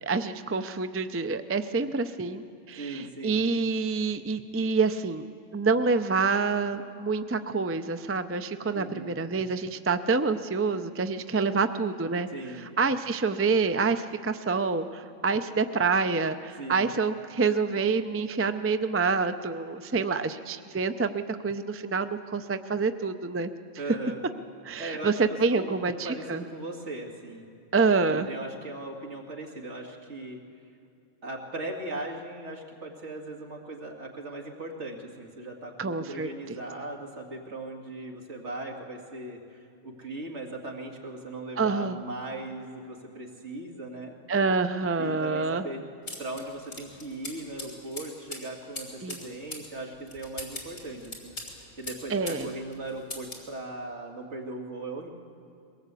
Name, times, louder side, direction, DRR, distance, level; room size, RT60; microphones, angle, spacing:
voice 1, 0.0-5.2 5.5-12.3 12.8-23.5 24.6-26.4 27.7-28.3 35.8-36.6 41.6-42.0 44.3-45.6 49.0-49.2 52.1-52.5, right 4 dB, 20° right, 9 dB, 0.3 m, -27 dB
voice 2, 2.8-3.4 8.7-9.2 12.3-12.7 16.6-16.9 23.8-24.2 24.8-27.5 28.1-30.4 31.2-44.2 45.0-45.8 46.2-51.3 51.8-55.1, right 2 dB, 65° right, 0 dB, 2.6 m, -38 dB
sound 1, 46.1-52.5 52.7-53.5, left 1 dB, 60° left, 3.5 m, -41 dB
22.0 x 18.0 x 8.3 m, 2.4 s
omnidirectional pair, 1.3 m